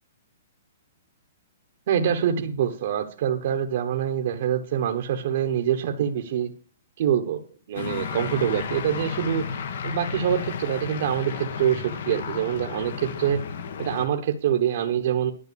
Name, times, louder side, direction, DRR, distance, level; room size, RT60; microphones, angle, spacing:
voice 1, 1.9-6.5 7.0-7.4 7.7-9.4 9.8-13.4 13.8-15.3, right 9 dB, 55° right, 4 dB, 1.1 m, -25 dB
sound 1, 7.7-14.1, left 6 dB, 65° left, 1.5 m, -33 dB
11.0 x 5.8 x 6.9 m, 0.39 s
hypercardioid pair, 160°, 0 cm